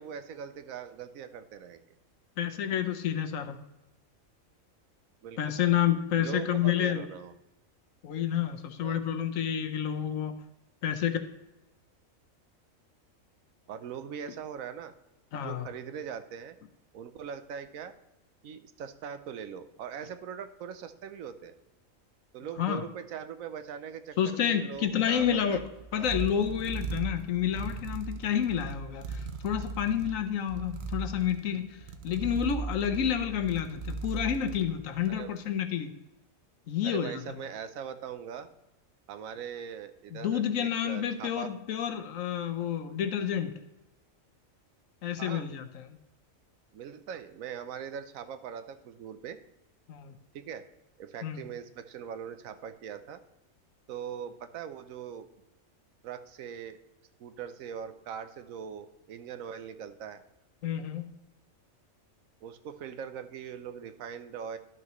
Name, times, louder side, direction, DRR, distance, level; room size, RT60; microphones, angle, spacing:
voice 1, 0.0-1.8 5.2-5.4 6.1-7.4 8.8-9.0 13.7-14.9 15.3-16.6 16.9-17.9 18.4-21.5 22.3-25.6 25.9-26.2 35.1-35.3 36.8-38.5 39.1-41.5 45.2-45.5 46.7-49.4 50.3-50.6 51.0-53.2 53.9-55.3 56.0-56.8 57.2-60.2 62.4-64.6, right 8 dB, 80° right, 10 dB, 1.0 m, -41 dB
voice 2, 2.4-3.6 5.4-7.0 8.0-10.3 10.8-11.2 15.3-15.7 22.6-22.8 24.2-25.6 25.9-35.9 36.7-37.2 40.1-43.5 45.0-46.0 49.9-50.1 51.2-51.4 60.6-61.1, left 9 dB, 75° left, 8 dB, 1.1 m, -29 dB
sound 1, 24.7-35.3, right 4 dB, 55° right, 0.8 m, -39 dB
12.0 x 5.9 x 3.0 m, 0.96 s
omnidirectional pair, 1.4 m